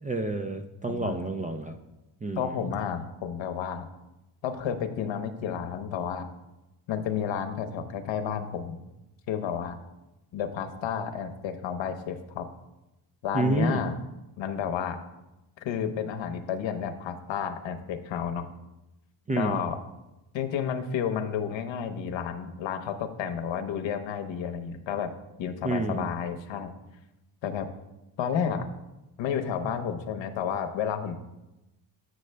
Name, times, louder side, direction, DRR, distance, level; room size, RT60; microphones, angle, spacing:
voice 1, 0.0-1.8 2.2-2.6 13.3-13.8 19.3-19.6 25.6-26.1, right 2 dB, 20° right, 7 dB, 0.3 m, -29 dB
voice 2, 0.9-1.3 2.4-3.8 4.4-6.3 6.9-8.8 9.3-9.8 10.3-12.5 13.2-14.0 14.4-15.0 15.6-18.5 19.3-19.8 20.3-25.1 25.4-26.7 27.4-27.7 28.2-28.7 29.2-31.2, left 7 dB, 70° left, 8 dB, 0.8 m, -31 dB
7.7 x 6.4 x 3.3 m, 0.97 s
cardioid pair, 105°, 46 cm